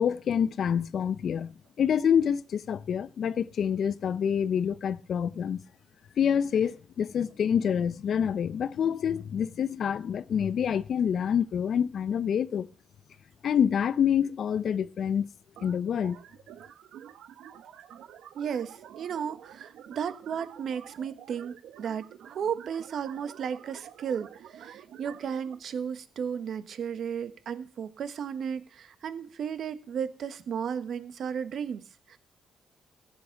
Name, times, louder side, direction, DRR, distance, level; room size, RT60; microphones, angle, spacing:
voice 1, 0.0-5.6 6.2-12.7 13.4-15.3 15.6-16.2, left 8 dB, 60° left, 0.6 m, -27 dB
sound 1, 15.6-25.5, right 10 dB, 80° right, 0.9 m, -49 dB
voice 2, 18.3-32.2, right 7 dB, 60° right, 1.2 m, -34 dB
15.0 x 8.5 x 5.9 m
cardioid pair, 90°, 0 cm